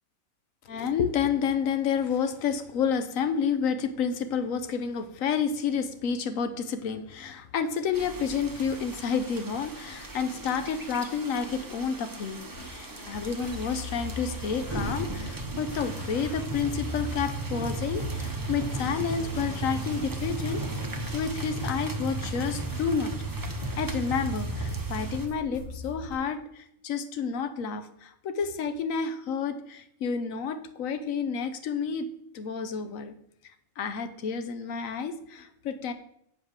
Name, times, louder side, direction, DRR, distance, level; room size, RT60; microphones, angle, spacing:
voice 1, 0.7-20.6 21.1-23.1 23.5-32.1 32.3-33.2 33.8-35.9, left 6 dB, 70° left, 10 dB, 1.2 m, -30 dB
sound 1, 7.9-25.3, right 3 dB, 20° right, 0.7 m, -35 dB
sound 2, 12.5-26.1, left 2 dB, 90° left, 3.1 m, -40 dB
8.2 x 5.3 x 6.3 m, 0.74 s
omnidirectional pair, 1.5 m